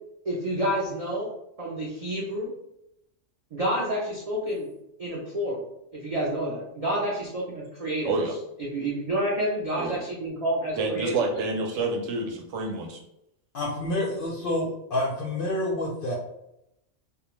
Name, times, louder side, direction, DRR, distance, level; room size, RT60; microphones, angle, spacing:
voice 1, 0.2-1.3 1.6-2.5 3.5-4.7 5.0-5.6 5.9-8.1 8.6-11.1, right 1 dB, 60° right, -5 dB, 0.4 m, -29 dB
voice 2, 10.8-13.0, right 3 dB, 80° right, 1 dB, 0.9 m, -28 dB
voice 3, 13.5-16.1, left 1 dB, 60° left, -2 dB, 0.6 m, -28 dB
2.4 x 2.2 x 3.0 m, 0.81 s
omnidirectional pair, 1.3 m